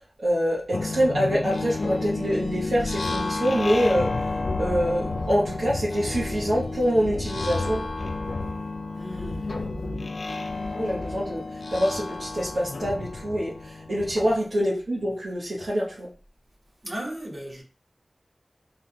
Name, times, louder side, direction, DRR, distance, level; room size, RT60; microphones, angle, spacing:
voice 1, 0.2-4.1 4.6-7.9 10.8-11.4 11.7-16.1, equal, 80° right, 1.0 m, -25 dB
sound 1, 0.7-14.4, left 3 dB, 80° left, 0.4 m, -31 dB
voice 2, 8.9-9.6 16.8-17.6, equal, 35° right, 1.5 m, -36 dB
3.9 x 3.5 x 2.2 m
cardioid pair, 40°, 0 cm